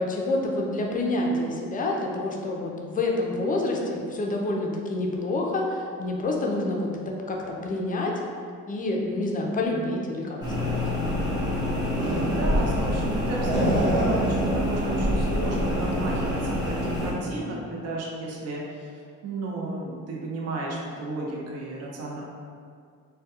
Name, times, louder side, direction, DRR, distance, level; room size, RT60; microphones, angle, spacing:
voice 1, 0.0-8.1 8.7-10.8, left 2 dB, 30° left, 0 dB, 0.4 m, -28 dB
sound 1, 10.4-17.1, equal, 15° right, 0.7 m, -25 dB
voice 2, 12.2-18.9 19.2-22.2, right 2 dB, 55° right, -3 dB, 0.5 m, -33 dB
2.2 x 2.2 x 2.7 m, 2.1 s
cardioid pair, 90°, 30 cm